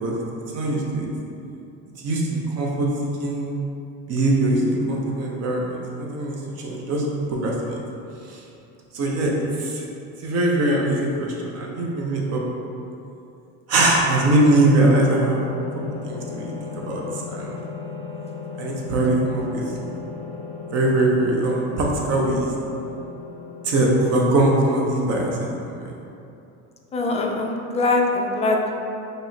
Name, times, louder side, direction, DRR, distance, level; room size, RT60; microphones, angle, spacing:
voice 1, 0.5-1.1 2.0-2.9 3.2-3.5 4.1-7.0 7.3-7.8 8.3-8.4 8.9-9.3 9.6-9.8 10.2-12.4 13.7-15.4 16.0-16.5 16.9-17.0 17.3-17.6 18.6-19.6 20.7-22.5 23.6-25.9, right 2 dB, 50° right, -2 dB, 0.8 m, -21 dB
sound 1, 14.2-24.0, left 5 dB, 10° right, 1.4 m, -36 dB
voice 2, 26.9-28.8, left 2 dB, 20° left, 1 dB, 0.3 m, -22 dB
4.7 x 3.1 x 2.8 m, 2.8 s
cardioid pair, 125°, 32 cm